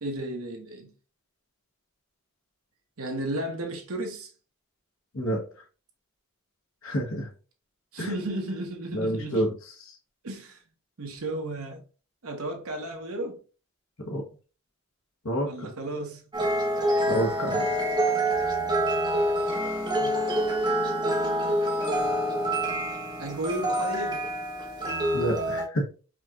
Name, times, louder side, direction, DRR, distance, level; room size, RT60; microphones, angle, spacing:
voice 1, 0.0-0.9 3.0-4.3 7.9-9.5 10.2-10.6 11.0-11.8 12.2-13.4 15.4-16.2 20.0-20.2 23.2-24.3, right 1 dB, 75° right, 1.0 m, -34 dB
voice 2, 6.8-7.3 8.0-8.1 8.9-9.5 9.9-10.0 14.1-14.2 15.2-15.7 17.1-17.7 25.1-25.9, right 1 dB, 65° left, 1.1 m, -28 dB
sound 1, 16.3-25.6, right 1 dB, 20° right, 0.8 m, -26 dB
4.9 x 2.9 x 2.4 m
head